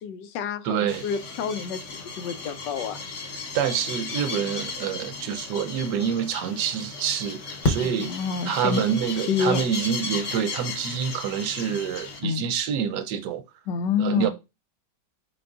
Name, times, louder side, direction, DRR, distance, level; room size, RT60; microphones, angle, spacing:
voice 1, 0.0-3.0 7.8-8.8 9.3-9.6 12.2-12.5 13.7-14.3, left 6 dB, 80° left, 1.2 m, -28 dB
voice 2, 0.6-1.1 3.5-8.1 8.4-13.4 14.0-14.3, right 8 dB, 75° right, 1.2 m, -27 dB
sound 1, 0.9-12.2, left 3 dB, 50° left, 1.0 m, -34 dB
5.1 x 3.9 x 2.3 m
omnidirectional pair, 1.9 m